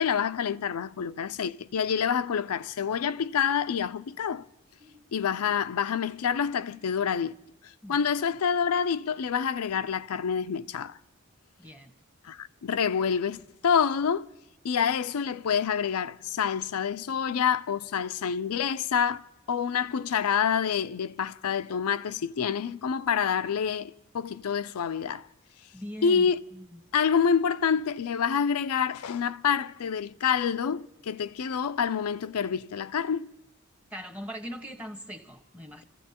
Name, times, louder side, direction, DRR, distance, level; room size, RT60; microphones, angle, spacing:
voice 1, 0.0-4.4 5.1-7.4 7.9-11.0 12.2-14.3 14.6-25.3 26.0-26.4 26.9-33.3, left 7 dB, 85° left, 0.5 m, -27 dB
voice 2, 4.8-5.1 7.8-8.0 11.6-11.9 25.7-26.8 33.9-35.8, equal, 5° right, 1.2 m, -41 dB
27.0 x 15.5 x 2.9 m
head